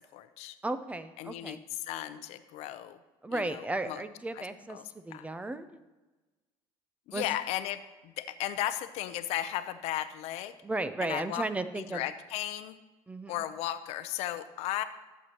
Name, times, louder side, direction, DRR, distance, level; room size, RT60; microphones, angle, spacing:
voice 1, 0.1-0.6 1.2-3.0 3.3-4.0 4.4-4.5 4.7-4.8 5.1-5.3 7.1-10.5 11.0-11.4 11.9-12.8 13.3-14.8, left 13 dB, 70° left, 12 dB, 0.6 m, -35 dB
voice 2, 0.6-1.6 3.2-4.8 5.0-5.7 7.1-7.2 10.6-12.0 13.1-13.4, right 2 dB, 10° right, 11 dB, 0.5 m, -34 dB
13.5 x 7.9 x 2.9 m, 1.2 s
cardioid pair, 125°, 11 cm